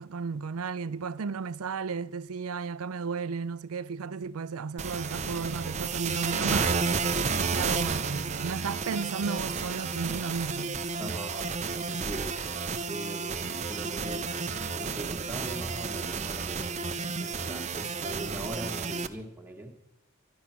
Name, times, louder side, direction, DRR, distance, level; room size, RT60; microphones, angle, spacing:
voice 1, 0.0-10.8, right 5 dB, 75° right, 0.5 m, -34 dB
sound 1, 4.8-19.1, right 4 dB, 30° right, 0.6 m, -31 dB
voice 2, 11.0-12.3 12.9-14.3 14.7-19.7, right 2 dB, 10° right, 1.7 m, -41 dB
12.5 x 12.0 x 5.9 m
head